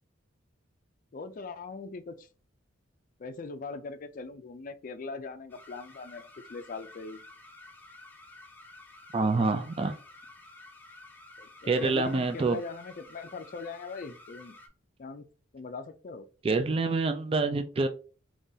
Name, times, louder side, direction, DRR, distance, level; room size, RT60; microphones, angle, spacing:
voice 1, 1.1-2.3 3.2-7.2 11.4-14.6 15.0-15.3 15.5-16.3, left 4 dB, 45° left, 0.4 m, -41 dB
sound 1, 5.5-14.7, left 2 dB, 10° left, 0.7 m, -52 dB
voice 2, 9.1-9.9 11.7-12.6 16.4-17.9, right 3 dB, 30° right, 0.3 m, -26 dB
3.8 x 3.0 x 2.6 m
head